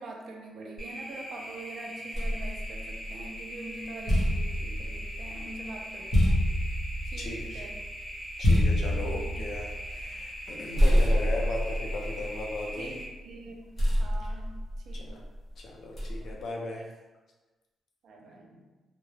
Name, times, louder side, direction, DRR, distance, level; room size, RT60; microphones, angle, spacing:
voice 1, 0.0-6.4 7.0-7.8 8.8-9.4 10.5-10.7 12.8-15.3 16.2-16.3 18.0-18.7, right 2 dB, 65° right, 1 dB, 0.4 m, -44 dB
sound 1, 0.8-13.0, equal, 15° right, 0.8 m, -41 dB
sound 2, 2.1-3.4 3.8-10.5 10.8-13.0 13.8-15.2 16.0-16.4, equal, 35° left, 0.8 m, -27 dB
voice 2, 7.2-7.7 8.4-13.0 14.2-14.3 14.9-15.2 15.6-16.8, left 2 dB, 50° left, 0 dB, 0.4 m, -37 dB
2.2 x 2.0 x 3.0 m, 1.2 s
wide cardioid pair, 160°, 0 cm